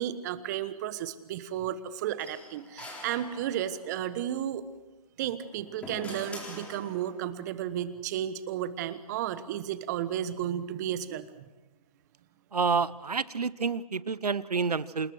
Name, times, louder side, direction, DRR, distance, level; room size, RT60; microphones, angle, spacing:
voice 1, 0.0-4.6 5.2-11.4, right 11 dB, 30° right, 14 dB, 1.3 m, -33 dB
sound 1, 2.2-3.9 5.3-7.3, left 1 dB, 5° left, 4.0 m, -44 dB
voice 2, 12.5-15.1, right 5 dB, 85° right, 18 dB, 1.1 m, -29 dB
27.5 x 19.5 x 6.4 m, 1.1 s
hypercardioid pair, 150°, 20 cm